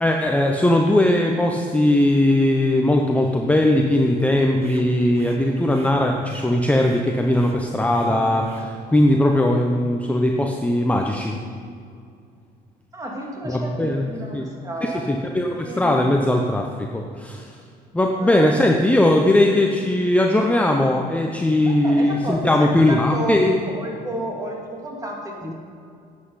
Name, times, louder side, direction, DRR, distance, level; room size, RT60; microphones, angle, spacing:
voice 1, 0.0-11.3 13.5-14.1 14.3-14.5 14.8-17.5 17.9-23.6 25.4-25.5, left 1 dB, 10° left, 1 dB, 0.7 m, -19 dB
sound 1, 4.3-8.7, right 4 dB, 35° right, 0.9 m, -36 dB
voice 2, 12.9-15.1 15.5-16.3 18.1-18.8 21.6-25.5, right 1 dB, 20° right, -1 dB, 2.4 m, -31 dB
9.7 x 8.2 x 5.6 m, 2.3 s
cardioid pair, 110°, 17 cm